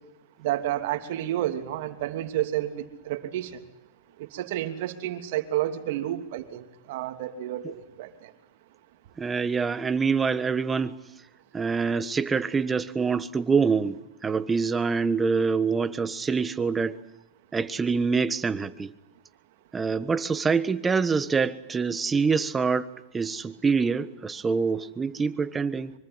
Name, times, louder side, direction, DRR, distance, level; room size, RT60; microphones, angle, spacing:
voice 1, 0.4-2.7 3.0-3.5 4.3-8.1, right 13 dB, 60° right, 2.9 m, -30 dB
voice 2, 9.2-10.9 11.5-16.9 17.5-18.9 19.7-22.9 23.1-25.9, right 5 dB, 15° right, 1.4 m, -25 dB
24.5 x 24.5 x 9.6 m
hypercardioid pair, 120°, 0 cm